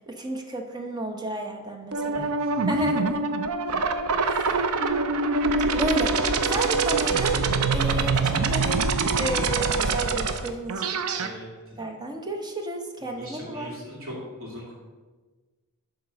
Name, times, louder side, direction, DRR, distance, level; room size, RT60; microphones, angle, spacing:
voice 1, 0.1-2.3 2.6-3.2 4.3-4.7 5.7-8.9 9.2-10.9 11.8-13.7, right 1 dB, 20° right, 2 dB, 0.9 m, -32 dB
sound 1, 1.9-11.3, right 4 dB, 85° right, 0.6 m, -24 dB
voice 2, 2.1-2.9 11.1-11.8 13.0-14.7, equal, 65° right, -3 dB, 2.7 m, -40 dB
11.0 x 3.9 x 5.2 m, 1.3 s
head